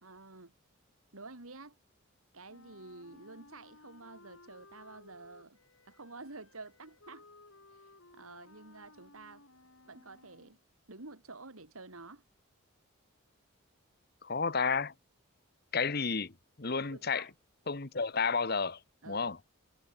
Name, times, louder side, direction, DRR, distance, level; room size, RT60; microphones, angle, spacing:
voice 1, 0.0-0.5 1.1-1.8 2.3-5.6 5.8-7.3 7.7-9.5 9.9-10.6 10.9-12.2 15.7-15.9 16.9-17.3 19.0-19.4, right 3 dB, 80° right, 2.7 m, -50 dB
Wind instrument woodwind instrument, 2.5-10.6, left 2 dB, 70° left, 5.2 m, -59 dB
voice 2, 14.2-14.9 15.7-16.3 16.6-17.3 17.7-18.8 19.1-19.4, left 5 dB, 45° left, 1.1 m, -31 dB
head